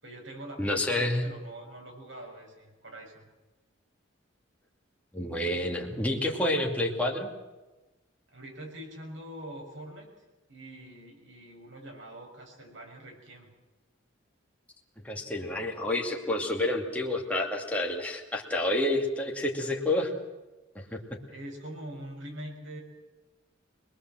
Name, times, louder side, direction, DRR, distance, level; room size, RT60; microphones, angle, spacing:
voice 1, 0.0-3.3 8.3-10.1 10.5-13.5 20.9-21.0 21.3-22.8, right 1 dB, 70° right, 1 dB, 6.9 m, -44 dB
voice 2, 0.6-1.3 5.1-7.3 15.0-20.1 20.7-21.2, left 1 dB, 5° left, -1 dB, 2.6 m, -29 dB
25.5 x 20.5 x 7.7 m, 1.1 s
head